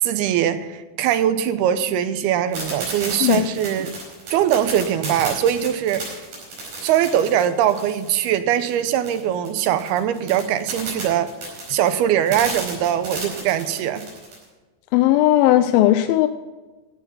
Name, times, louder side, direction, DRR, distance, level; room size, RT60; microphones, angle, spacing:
voice 1, 0.0-3.9 4.3-6.1 6.8-11.3 11.7-14.0, right 10 dB, 90° right, 11 dB, 2.8 m, -21 dB
sound 1, 2.5-14.4, right 3 dB, 65° right, 6.9 m, -33 dB
voice 2, 14.9-16.3, left 14 dB, 80° left, 10 dB, 2.2 m, -16 dB
15.0 x 8.5 x 5.5 m, 1.2 s
omnidirectional pair, 4.4 m